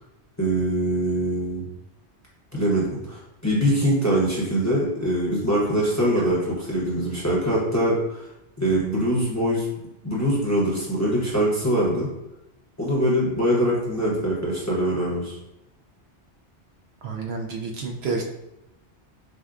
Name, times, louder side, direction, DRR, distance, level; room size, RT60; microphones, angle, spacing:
voice 1, 0.4-1.6 2.5-8.2 8.6-9.7 10.0-12.1 12.8-15.4, equal, 15° left, -6 dB, 0.8 m, -23 dB
voice 2, 17.0-18.2, right 4 dB, 70° right, 1 dB, 0.8 m, -29 dB
6.2 x 2.1 x 2.5 m, 0.91 s
omnidirectional pair, 1.2 m